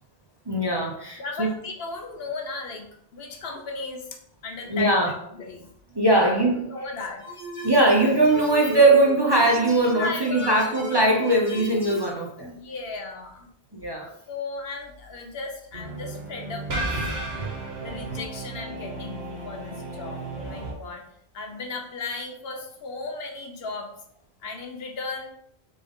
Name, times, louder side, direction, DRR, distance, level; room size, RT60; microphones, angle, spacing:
voice 1, 0.5-1.5 4.7-5.1 5.9-6.6 7.6-12.5 13.7-14.1, right 2 dB, 30° right, -2 dB, 0.6 m, -20 dB
voice 2, 1.2-4.1 4.4-5.0 5.3-5.7 6.1-6.2 6.7-7.3 10.0-10.7 12.4-13.5 14.3-17.0 17.8-21.0 21.3-23.9 24.4-25.3, left 3 dB, 70° left, 3 dB, 0.9 m, -35 dB
sound 1, 7.2-12.1, left 1 dB, 30° left, 1.2 m, -37 dB
sound 2, 15.7-20.7, right 2 dB, 75° right, 1.1 m, -33 dB
3.5 x 3.4 x 3.5 m, 0.70 s
omnidirectional pair, 1.0 m